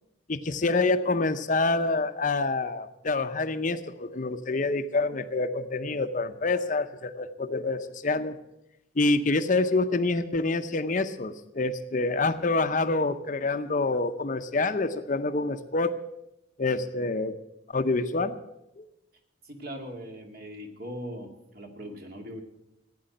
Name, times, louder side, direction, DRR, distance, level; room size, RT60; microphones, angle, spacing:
voice 1, 0.3-8.3 9.0-15.9 16.6-17.3 17.7-18.4 18.8-18.9, left 3 dB, 40° left, 10 dB, 0.7 m, -27 dB
voice 2, 19.4-22.4, equal, 50° right, 3 dB, 2.3 m, -40 dB
15.5 x 9.4 x 7.8 m, 0.89 s
head